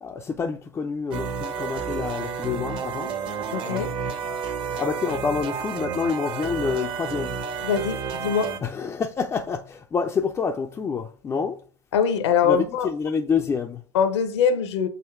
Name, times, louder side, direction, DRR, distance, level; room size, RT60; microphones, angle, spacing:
voice 1, 0.0-3.1 3.7-3.9 4.8-7.5 8.6-11.6 12.4-13.8, left 5 dB, 15° left, 0.4 m, -27 dB
sound 1, 1.1-8.6, right 6 dB, 35° right, 0.7 m, -31 dB
voice 2, 3.5-3.9 7.6-8.5 11.9-12.9 13.9-14.9, left 7 dB, 65° left, 0.6 m, -22 dB
sound 2, 3.5-7.9 8.1-8.2, right 3 dB, 75° right, 1.4 m, -46 dB
8.0 x 2.8 x 2.3 m
figure-of-eight pair, 85°, 16 cm